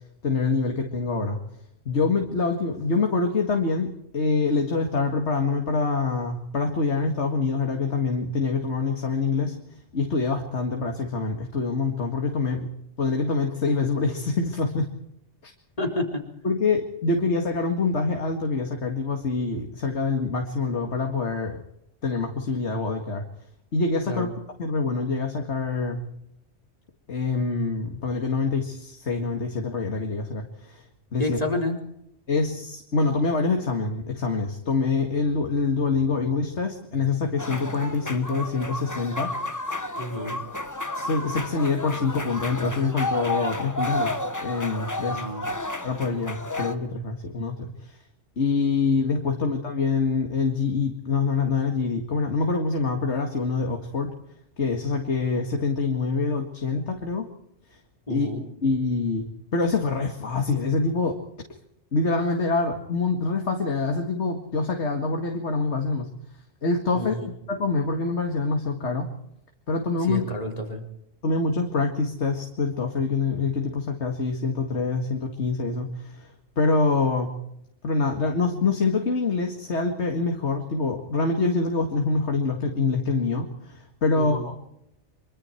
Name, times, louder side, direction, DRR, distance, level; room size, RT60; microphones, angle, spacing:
voice 1, 0.2-1.4 1.9-9.6 9.9-12.7 13.0-14.9 15.4-15.5 16.4-21.6 22.0-23.3 23.7-24.3 24.6-26.0 27.1-30.8 31.1-31.4 32.3-39.3 41.0-45.2 45.8-48.0 48.4-54.1 54.6-57.3 58.1-58.3 58.6-61.2 61.9-66.1 66.6-67.1 67.5-69.1 69.7-70.3 71.2-76.3 76.6-77.3 77.8-84.6, left 4 dB, 75° left, 3 dB, 2.3 m, -25 dB
voice 2, 15.8-16.2 24.1-24.3 31.2-31.8 40.0-40.4 45.1-45.4 58.1-58.4 66.9-67.3 70.1-70.8 84.1-84.5, left 1 dB, 35° left, 2 dB, 4.2 m, -29 dB
sound 1, 37.4-46.8, left 1 dB, 15° left, 1.1 m, -31 dB
25.0 x 24.0 x 4.6 m, 0.78 s
omnidirectional pair, 1.2 m